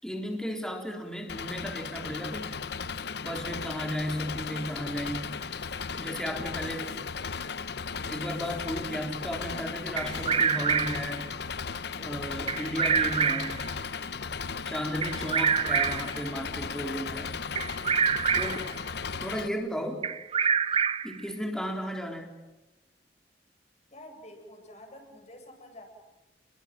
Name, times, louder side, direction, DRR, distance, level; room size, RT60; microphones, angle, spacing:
voice 1, 0.0-2.6 3.2-5.3 5.9-6.9 8.1-11.3 12.0-13.6 14.7-17.4 18.3-18.6 19.2-20.0 21.0-22.3, equal, 5° left, 3 dB, 4.0 m, -34 dB
Engine, 1.3-19.5, left 5 dB, 65° left, 0.9 m, -36 dB
Bird vocalization bird call bird song, 10.0-11.1 12.5-13.6 15.0-16.2 17.6-18.7 20.0-21.2, right 6 dB, 35° right, 1.0 m, -26 dB
voice 2, 18.4-19.0 23.9-25.8, left 1 dB, 40° left, 4 dB, 7.8 m, -49 dB
29.5 x 22.5 x 7.8 m, 1.1 s
head